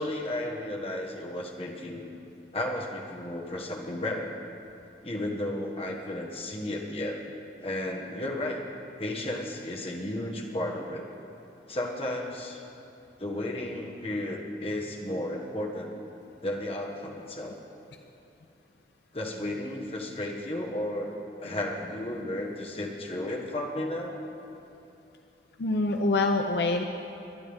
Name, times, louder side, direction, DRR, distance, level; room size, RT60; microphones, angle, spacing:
voice 1, 0.0-2.1 2.5-4.3 5.0-7.2 7.6-8.6 9.0-11.0 11.7-12.6 13.2-15.9 16.4-17.6 19.1-24.2, left 1 dB, 35° left, 0 dB, 1.3 m, -33 dB
voice 2, 25.6-26.8, left 2 dB, 70° left, 4 dB, 0.6 m, -25 dB
21.0 x 11.0 x 3.6 m, 2.8 s
head